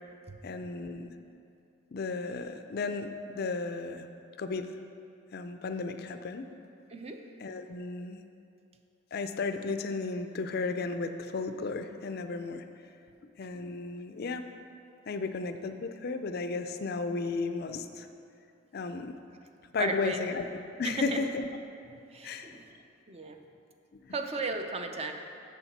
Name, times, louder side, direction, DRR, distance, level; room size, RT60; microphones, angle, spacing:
voice 1, 0.4-1.2 1.9-4.1 4.4-4.7 5.3-6.5 7.4-8.2 9.1-12.7 13.4-14.5 15.1-18.1 18.7-19.1 19.7-20.5 20.8-21.5 22.2-22.5, left 4 dB, 50° left, 8 dB, 0.4 m, -34 dB
voice 2, 6.9-7.2 19.8-20.3 20.8-21.2 22.1-22.7 23.1-23.4 24.1-25.1, right 3 dB, 30° right, 5 dB, 0.5 m, -35 dB
7.4 x 7.0 x 5.9 m, 2.6 s
head